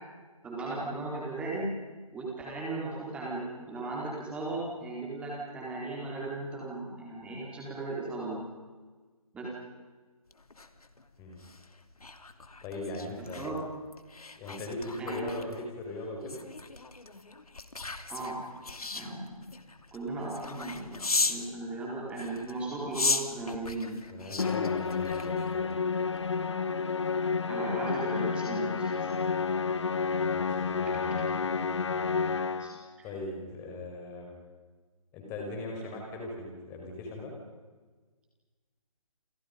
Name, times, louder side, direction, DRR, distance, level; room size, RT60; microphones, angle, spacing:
voice 1, 0.4-1.8 2.1-8.4 9.3-9.5 13.2-13.6 15.0-15.3 18.1-18.4 18.9-19.5 19.9-24.0 27.4-29.1 32.6-33.1, right 2 dB, 5° right, -5 dB, 4.3 m, -36 dB
sound 1, 10.3-21.5 22.1-25.7 26.1-26.4, left 3 dB, 75° left, 2.9 m, -37 dB
voice 2, 12.6-13.5 14.4-16.4 24.1-25.7 30.3-31.2 33.0-34.4 35.1-37.3, left 2 dB, 15° left, 1 dB, 5.2 m, -39 dB
Musical instrument, 24.4-32.9, left 5 dB, 50° left, 1.6 m, -30 dB
29.0 x 28.0 x 5.4 m, 1.4 s
figure-of-eight pair, 160°, 19 cm